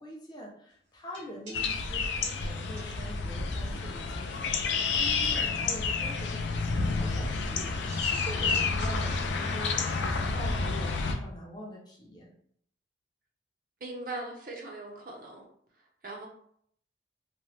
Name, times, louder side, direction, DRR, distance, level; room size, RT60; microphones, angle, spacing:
voice 1, 0.0-12.3, equal, 25° left, -2 dB, 0.5 m, -44 dB
sound 1, 1.1-3.4 3.7-3.9 4.1-4.2 4.4-4.5 7.5-9.3, right 1 dB, 85° right, 1.0 m, -49 dB
sound 2, 1.5-11.2, left 4 dB, 75° left, 0.4 m, -30 dB
voice 2, 13.8-15.4 15.7-16.3, right 2 dB, 50° right, -1 dB, 0.6 m, -40 dB
2.9 x 2.1 x 3.1 m, 0.66 s
head